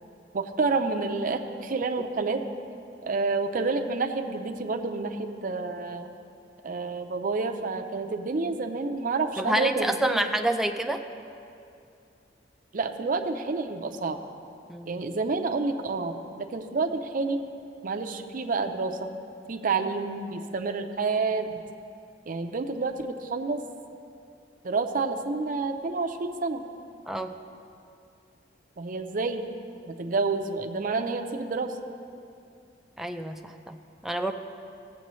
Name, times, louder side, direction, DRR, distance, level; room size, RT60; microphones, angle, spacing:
voice 1, 0.3-2.4 3.0-6.1 6.6-10.2 12.7-14.2 14.9-17.4 17.8-19.1 19.5-21.6 22.3-23.6 24.6-26.7 28.8-29.4 29.9-31.7, right 3 dB, 50° right, 5 dB, 0.6 m, -29 dB
voice 2, 9.4-11.0 14.7-15.0 27.1-27.3 33.0-34.3, right 1 dB, ahead, 5 dB, 0.4 m, -28 dB
16.0 x 7.6 x 3.1 m, 2.5 s
head